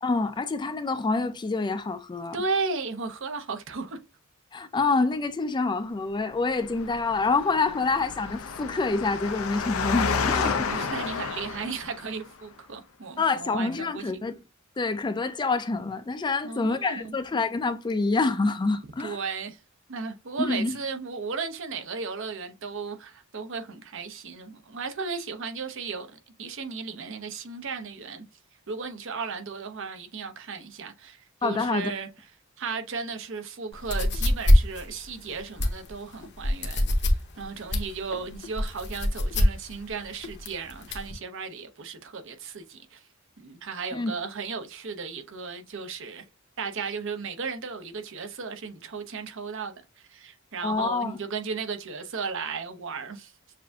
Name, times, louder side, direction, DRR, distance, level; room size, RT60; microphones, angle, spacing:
voice 1, 0.0-2.4 4.5-10.7 13.2-14.4 14.8-19.2 20.4-20.8 31.4-31.9 43.9-44.1 50.6-51.2, left 3 dB, 20° left, 0.4 m, -27 dB
voice 2, 2.3-4.0 10.7-14.3 16.4-17.1 19.0-19.6 19.9-28.2 28.7-32.1 32.6-43.0 43.4-46.2 46.6-53.3, right 5 dB, 65° right, 0.7 m, -35 dB
Engine, 6.6-12.2, left 5 dB, 90° left, 0.6 m, -31 dB
sound 1, 33.7-41.1, left 1 dB, 55° left, 0.9 m, -24 dB
6.6 x 2.6 x 2.3 m
head